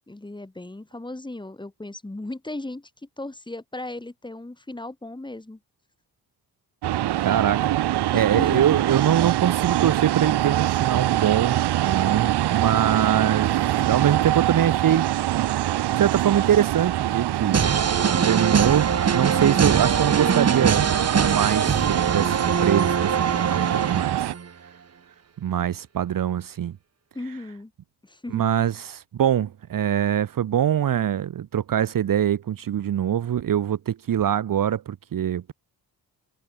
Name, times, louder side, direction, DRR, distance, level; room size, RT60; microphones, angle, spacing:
voice 1, 0.0-2.9 3.2-5.6 8.1-8.8 27.1-27.7 28.0-28.4, left 2 dB, 10° left, 5.3 m, -36 dB
sound 1, 6.8-24.3, right 13 dB, 85° right, 1.1 m, -24 dB
voice 2, 7.2-15.1 15.9-17.7 18.1-24.3 25.4-26.8 28.3-35.5, right 10 dB, 55° right, 1.3 m, -24 dB
sound 2, 17.5-24.5, right 6 dB, 40° right, 2.9 m, -23 dB
wide cardioid pair, 135°, 39 cm